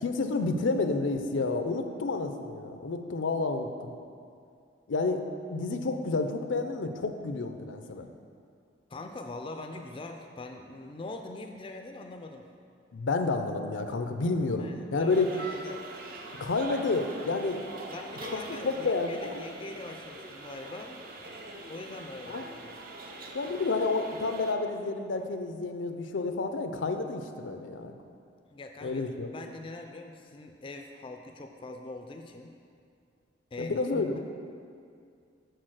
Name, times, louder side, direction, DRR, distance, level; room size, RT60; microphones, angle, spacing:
voice 1, 0.0-3.9 4.9-8.1 12.9-15.3 16.4-17.6 18.3-19.4 22.3-22.4 23.3-27.9 28.8-29.3 33.6-34.2, left 3 dB, 85° left, 6 dB, 0.5 m, -30 dB
voice 2, 8.9-12.4 14.6-15.8 17.9-21.3 21.7-22.5 28.5-29.0 29.3-32.5 33.5-34.2, left 2 dB, 30° left, 4 dB, 0.3 m, -42 dB
sound 1, 15.1-24.5, right 2 dB, 50° right, 0.5 m, -43 dB
6.5 x 4.0 x 6.4 m, 2.4 s
head